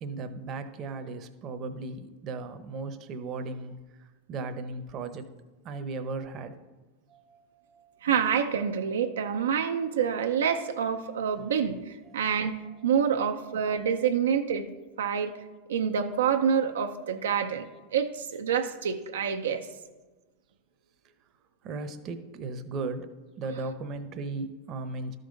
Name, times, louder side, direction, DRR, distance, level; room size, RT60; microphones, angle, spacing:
voice 1, 0.0-5.3 5.6-6.6 7.1-8.0 12.1-12.3 12.7-13.2 21.6-23.1 23.4-25.2, right 3 dB, 40° right, 8 dB, 0.7 m, -37 dB
voice 2, 8.0-11.8 12.1-12.6 12.8-14.6 15.0-15.3 15.7-17.7 17.9-19.7, right 7 dB, 90° right, 5 dB, 0.5 m, -27 dB
12.5 x 5.2 x 3.9 m, 1.2 s
hypercardioid pair, 110°, 0 cm